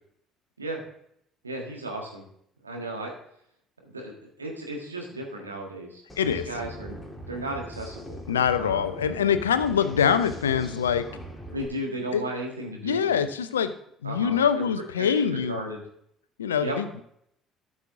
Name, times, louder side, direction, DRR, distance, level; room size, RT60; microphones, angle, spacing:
voice 1, 1.4-2.2 2.6-3.1 3.8-7.0 7.3-8.2 8.6-8.9 11.5-13.3 14.0-14.4 15.0-15.8 16.6-16.8, right 1 dB, 85° right, 0 dB, 1.6 m, -35 dB
sound 1, 6.1-11.7, right 1 dB, 5° left, 3.0 m, -41 dB
voice 2, 6.2-6.5 8.3-11.1 12.1-12.2 12.8-13.7 14.0-15.6 16.4-17.0, left 7 dB, 80° left, 12 dB, 0.5 m, -24 dB
12.5 x 6.3 x 3.7 m, 0.70 s
figure-of-eight pair, 55°, 0 cm